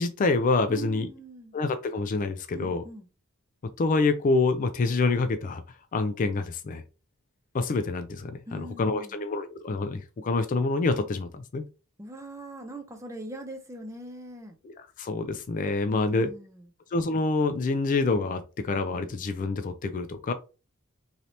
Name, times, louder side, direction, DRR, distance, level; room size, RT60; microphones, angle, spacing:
voice 1, 0.0-1.1 1.5-2.8 3.8-5.6 5.9-6.8 7.5-11.7 15.0-16.3 16.9-20.3, left 3 dB, 35° left, 0.3 m, -27 dB
voice 2, 0.7-1.5 2.5-3.1 8.5-9.2 12.0-14.6 15.9-16.6, right 1 dB, 15° right, 0.5 m, -41 dB
3.2 x 2.7 x 2.6 m
head